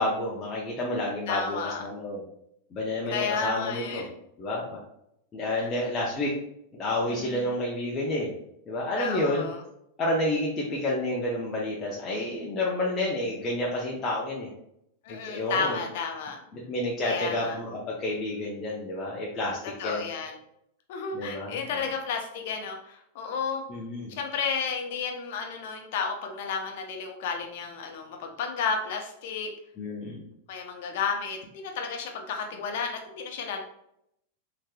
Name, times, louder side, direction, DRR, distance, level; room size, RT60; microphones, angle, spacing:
voice 1, 0.0-2.2 2.7-4.0 4.4-4.8 5.3-6.3 6.7-8.3 8.7-9.5 10.0-14.5 15.1-15.8 16.5-20.0 21.1-21.5 23.7-24.1 29.8-30.2, left 1 dB, 30° left, -4 dB, 0.7 m, -30 dB
voice 2, 1.3-1.8 3.1-4.1 5.6-5.7 7.1-7.5 9.0-9.6 15.0-16.4 17.0-17.6 19.6-20.3 20.9-23.6 24.2-29.5 30.5-33.6, left 5 dB, 65° left, 3 dB, 0.6 m, -32 dB
3.3 x 2.9 x 2.2 m, 0.77 s
hypercardioid pair, 120°, 0 cm